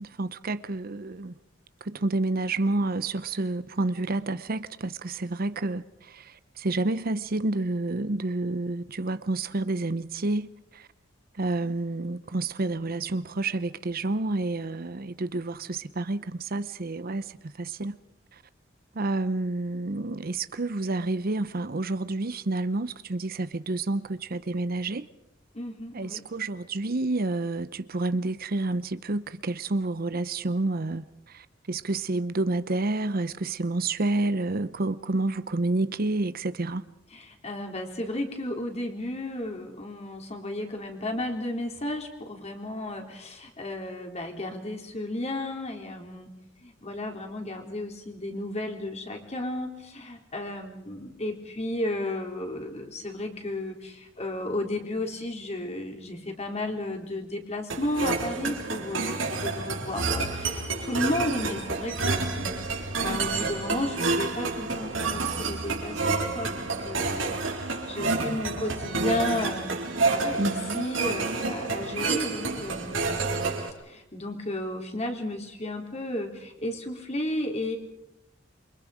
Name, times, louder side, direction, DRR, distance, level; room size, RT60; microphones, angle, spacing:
voice 1, 0.0-1.3 1.9-6.3 6.6-10.5 10.7-10.8 11.4-17.3 17.6-18.0 19.0-25.1 25.9-31.0 31.3-36.9 70.4-70.9, right 2 dB, 50° right, 0.8 m, -29 dB
voice 2, 25.5-26.2 37.1-46.3 46.6-73.2 73.9-77.8, left 1 dB, 35° left, 3.8 m, -33 dB
sound 1, 57.7-73.7, right 3 dB, 85° right, 4.0 m, -29 dB
28.0 x 24.0 x 5.1 m
head